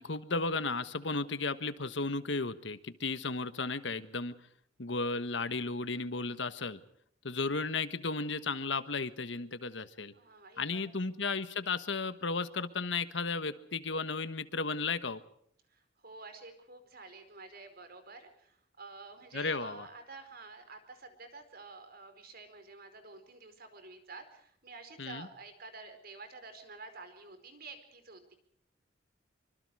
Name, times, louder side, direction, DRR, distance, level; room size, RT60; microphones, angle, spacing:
voice 1, 0.0-4.3 4.8-6.8 7.2-10.1 10.6-15.2 19.3-19.9 25.0-25.3, left 3 dB, 65° left, 12 dB, 1.4 m, -34 dB
voice 2, 10.1-10.9 15.7-28.3, right 3 dB, 55° right, 8 dB, 4.7 m, -50 dB
26.0 x 24.5 x 4.9 m, 0.67 s
head